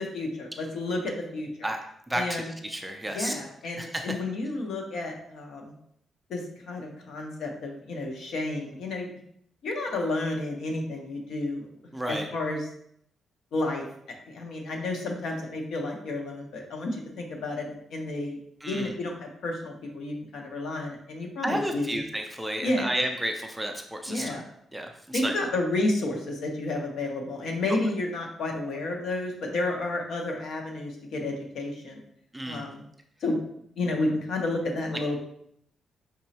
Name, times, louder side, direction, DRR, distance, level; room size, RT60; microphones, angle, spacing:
voice 1, 0.0-1.7 2.1-2.5 3.1-5.7 6.3-6.4 6.7-9.1 9.6-11.7 12.1-12.6 13.5-13.8 14.3-18.4 18.6-22.0 22.6-22.9 24.1-24.4 25.1-32.0 32.4-32.8 33.2-33.4 33.8-35.2, left 2 dB, 70° left, 1 dB, 0.9 m, -31 dB
voice 2, 2.1-3.4 3.8-4.0 11.9-12.3 18.6-18.9 21.4-24.4 24.7-25.4 32.3-32.7, right 1 dB, 5° right, 4 dB, 0.4 m, -32 dB
5.3 x 3.1 x 2.8 m, 0.70 s
wide cardioid pair, 160°, 0 cm